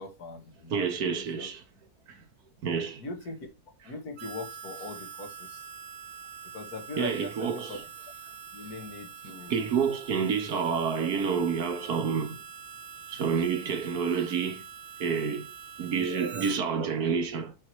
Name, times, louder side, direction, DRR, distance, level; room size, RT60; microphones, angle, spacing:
voice 1, 0.0-1.1 1.4-1.5 3.0-3.5 3.9-5.6 6.5-7.8 8.5-9.9 15.9-16.5 16.8-16.9, left 2 dB, 75° left, 2.1 m, -40 dB
voice 2, 0.7-1.6 2.1-2.2 2.6-3.0 7.0-7.8 9.2-12.4 13.1-14.6 15.0-15.5 15.8-17.6, right 6 dB, 75° right, 1.6 m, -29 dB
Harmonica, 4.2-16.6, right 7 dB, 50° right, 0.7 m, -45 dB
7.5 x 4.6 x 4.6 m
omnidirectional pair, 1.6 m